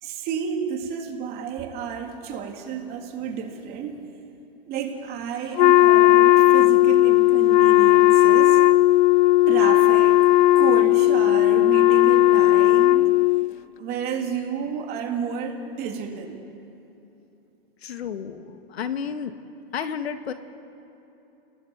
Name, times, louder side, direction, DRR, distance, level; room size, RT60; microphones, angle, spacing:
voice 1, 0.0-4.0 4.7-8.6 9.5-13.2 13.8-16.4, right 6 dB, 30° right, 3 dB, 3.2 m, -31 dB
Wind instrument woodwind instrument, 5.6-13.5, left 15 dB, 50° left, 0.5 m, -16 dB
voice 2, 17.8-19.3 19.7-20.3, left 7 dB, 90° left, 8 dB, 1.9 m, -31 dB
29.5 x 19.0 x 8.0 m, 2.9 s
hypercardioid pair, 150°, 31 cm